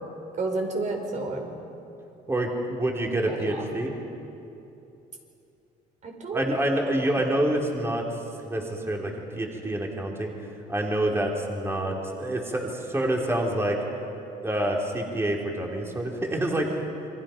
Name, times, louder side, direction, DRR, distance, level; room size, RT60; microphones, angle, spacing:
voice 1, 0.4-1.5 3.3-3.6 6.0-6.4 7.0-7.3, right 3 dB, 45° right, 2 dB, 5.2 m, -31 dB
voice 2, 2.3-3.9 6.3-8.0 8.4-10.3 10.7-13.8 14.4-16.9, right 1 dB, 15° right, 0 dB, 3.4 m, -27 dB
29.0 x 24.0 x 5.8 m, 2.9 s
cardioid pair, 110°, 17 cm